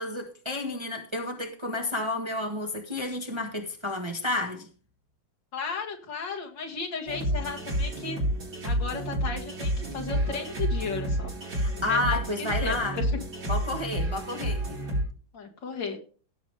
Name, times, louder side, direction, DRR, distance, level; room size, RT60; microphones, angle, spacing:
voice 1, 0.0-4.7 11.5-13.0 13.4-14.8, left 2 dB, 15° right, 3 dB, 1.3 m, -31 dB
voice 2, 5.5-8.2 8.6-11.3 11.7-13.1 15.3-16.0, left 4 dB, 65° left, 1 dB, 2.7 m, -35 dB
sound 1, 7.1-15.0, right 1 dB, 70° right, 5.5 m, -30 dB
17.5 x 7.3 x 3.4 m, 0.38 s
omnidirectional pair, 2.2 m